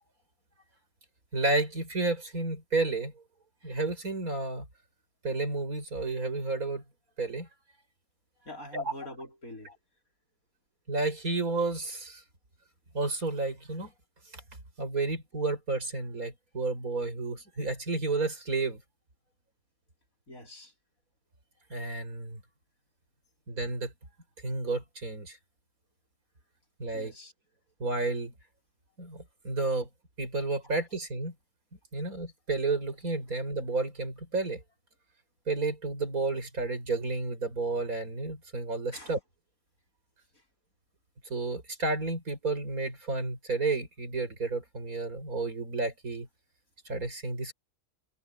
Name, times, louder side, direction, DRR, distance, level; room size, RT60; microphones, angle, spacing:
voice 1, 1.3-3.1 3.6-4.7 5.2-6.8 7.2-7.5 8.7-8.9 10.9-12.2 12.9-13.9 14.3-14.4 14.8-18.8 21.7-22.4 23.5-23.9 24.4-25.4 26.8-27.1 27.8-28.3 29.0-29.9 30.2-31.3 31.9-34.6 35.5-39.2 41.3-46.3 46.9-47.5, right 3 dB, 85° right, 6.0 m, -31 dB
voice 2, 8.4-9.7 20.3-20.7 26.9-27.3 30.6-30.7 38.9-39.2 40.3-40.4, left 1 dB, 75° left, 5.8 m, -45 dB
omnidirectional pair, 1.5 m